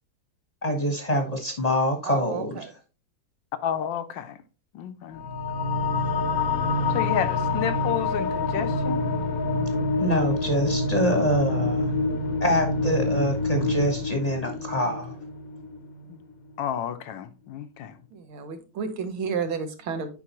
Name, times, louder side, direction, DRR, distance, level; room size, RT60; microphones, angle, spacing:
voice 1, 0.6-2.7 10.0-11.9 12.4-15.1, equal, 25° left, 0.9 m, -25 dB
voice 2, 2.1-2.7 18.1-20.1, right 6 dB, 85° right, 1.9 m, -31 dB
voice 3, 3.6-4.4 4.7-5.2 6.9-9.0 16.1-16.2 16.6-18.0, left 8 dB, 75° left, 1.2 m, -31 dB
sound 1, 5.1-16.1, left 3 dB, 60° left, 1.0 m, -27 dB
8.5 x 5.2 x 2.9 m
omnidirectional pair, 2.2 m